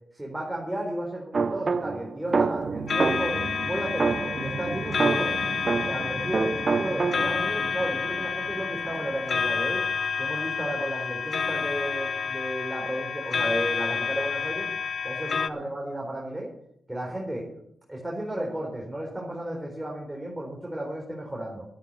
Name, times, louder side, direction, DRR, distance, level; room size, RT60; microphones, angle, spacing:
voice 1, 0.1-5.3 5.8-9.8 10.2-14.7 15.0-16.5 16.9-17.6 17.9-21.7, right 1 dB, 15° right, -2 dB, 4.1 m, -33 dB
sound 1, 1.3-3.5 4.0-6.1 6.3-7.5, right 4 dB, 50° right, 0.7 m, -27 dB
sound 2, 2.3-9.8, right 4 dB, 65° right, 1.4 m, -38 dB
sound 3, 2.9-15.5, left 6 dB, 60° left, 0.7 m, -29 dB
11.5 x 8.9 x 7.0 m, 0.73 s
supercardioid pair, 45°, 0 cm